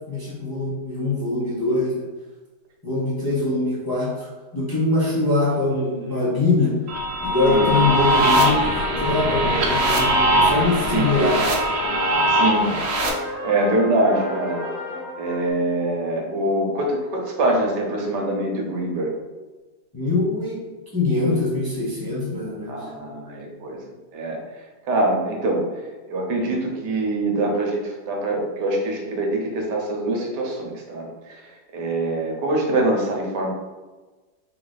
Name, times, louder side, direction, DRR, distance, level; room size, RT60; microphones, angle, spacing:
voice 1, 0.1-2.0 2.8-6.7 7.2-8.6 9.0-11.5 19.9-20.6 20.9-22.8, left 2 dB, 15° left, -8 dB, 0.8 m, -23 dB
sound 1, 6.9-13.1, right 1 dB, 55° right, 0.7 m, -21 dB
sound 2, 7.4-15.5, left 2 dB, 75° left, 1.3 m, -32 dB
voice 2, 12.3-12.9 13.4-14.6 15.2-19.1 22.7-23.8 24.1-24.4 24.9-25.6 26.1-31.4 31.7-33.5, right 2 dB, 80° right, 0 dB, 1.4 m, -24 dB
3.7 x 3.2 x 3.9 m, 1.2 s
omnidirectional pair, 1.8 m